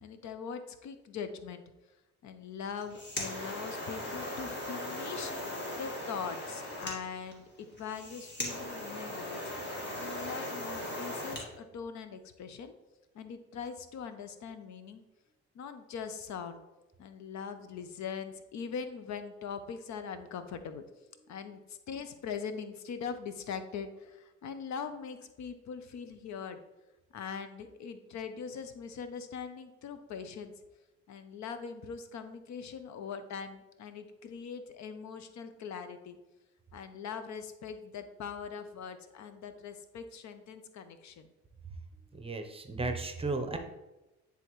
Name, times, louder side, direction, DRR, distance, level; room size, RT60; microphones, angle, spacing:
voice 1, 0.0-1.6 2.2-7.4 7.7-9.4 9.7-12.7 13.1-15.0 15.5-16.6 17.0-20.8 21.3-26.6 27.1-30.5 31.1-36.2 36.7-41.3, left 6 dB, 65° left, 9 dB, 0.6 m, -41 dB
sound 1, 2.7-11.5, left 1 dB, 35° left, 1.8 m, -39 dB
voice 2, 42.1-43.6, right 3 dB, 20° right, 6 dB, 0.7 m, -34 dB
9.7 x 3.5 x 3.0 m, 1.0 s
cardioid pair, 90°, 30 cm